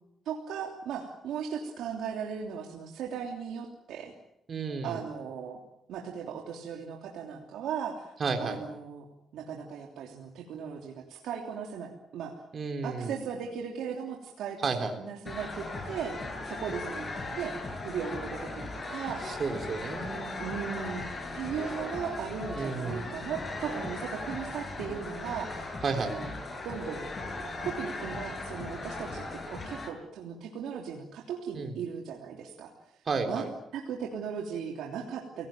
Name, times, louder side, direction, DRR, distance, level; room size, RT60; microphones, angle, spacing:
voice 1, 0.2-4.1 4.8-5.6 5.9-8.1 8.4-9.0 9.3-12.4 12.8-14.7 15.0-17.6 17.8-19.4 20.4-21.1 21.3-25.7 25.9-26.3 26.6-27.1 27.6-32.7 33.3-33.4 33.7-35.5, right 7 dB, 85° right, 1 dB, 3.1 m, -37 dB
voice 2, 4.5-5.0 8.2-8.6 12.5-13.2 14.6-14.9 19.2-20.3 22.6-23.0 25.8-26.1 31.5-31.7 33.1-33.5, right 4 dB, 45° right, 5 dB, 3.8 m, -32 dB
sound 1, 15.3-29.9, left 2 dB, 35° left, 6.8 m, -38 dB
29.5 x 18.0 x 9.0 m, 0.83 s
cardioid pair, 90°, 0 cm